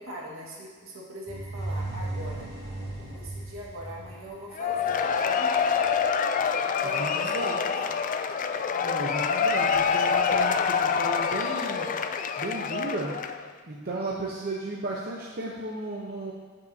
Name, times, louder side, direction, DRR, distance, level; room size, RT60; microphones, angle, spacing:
voice 1, 0.0-2.5 3.1-5.8 6.5-8.0 8.7-9.2, right 1 dB, 75° right, -4 dB, 1.7 m, -42 dB
sound 1, 1.3-5.2, right 2 dB, 30° right, 2.2 m, -36 dB
Cheering / Applause / Crowd, 4.6-13.5, left 6 dB, 40° left, 0.3 m, -26 dB
voice 2, 6.9-7.6 8.8-11.9 12.4-13.2 13.7-16.3, right 2 dB, 50° right, -3 dB, 0.8 m, -34 dB
13.5 x 5.5 x 2.8 m, 1.5 s
head